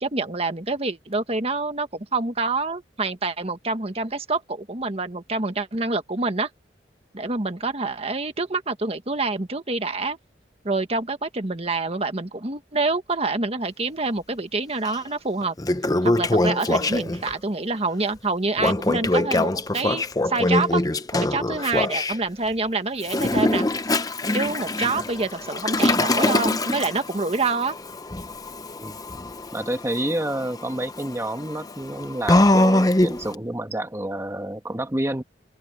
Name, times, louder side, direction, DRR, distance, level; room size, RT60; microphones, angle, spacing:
voice 1, 0.0-6.5 7.1-10.2 10.6-15.5 16.0-20.8 21.2-23.7 24.3-27.8, right 3 dB, 35° right, 1.5 m, -26 dB
Toilet flush, 14.9-15.0 15.4-17.3 18.6-22.2 23.0-33.3, left 2 dB, 20° left, 0.8 m, -23 dB
voice 2, 29.5-35.2, right 1 dB, 15° right, 1.3 m, -28 dB
head